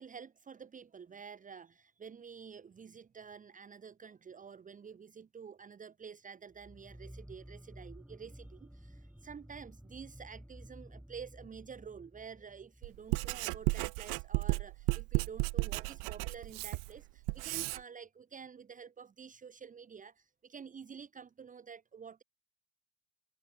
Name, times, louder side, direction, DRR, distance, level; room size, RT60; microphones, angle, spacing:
voice 1, 0.0-22.2, right 6 dB, 15° right, 2.1 m, -49 dB
sound 1, 6.5-13.8, equal, ahead, 1.9 m, -53 dB
Writing, 12.8-17.8, right 31 dB, 45° right, 0.6 m, -34 dB
open air
cardioid pair, 160°, 46 cm